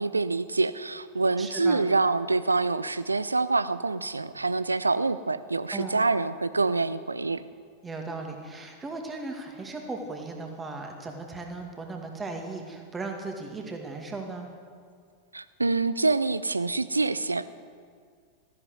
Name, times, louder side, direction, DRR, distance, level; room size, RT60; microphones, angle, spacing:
voice 1, 0.0-7.4 15.3-17.5, right 3 dB, 80° right, 15 dB, 0.5 m, -26 dB
voice 2, 1.4-1.8 5.7-6.0 7.8-14.5, right 3 dB, 15° right, 3 dB, 2.2 m, -37 dB
14.5 x 11.0 x 7.9 m, 2.1 s
figure-of-eight pair, 90°, 0 cm